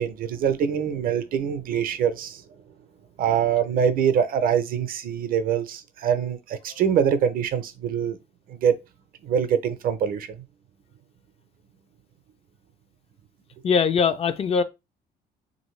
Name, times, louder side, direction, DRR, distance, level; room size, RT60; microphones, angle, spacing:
voice 1, 0.0-2.4 3.2-8.2 8.5-8.8 9.2-10.4, right 8 dB, 60° right, 0.6 m, -24 dB
voice 2, 13.6-14.6, left 6 dB, 35° left, 0.4 m, -22 dB
3.0 x 2.6 x 3.1 m
cardioid pair, 110°, 17 cm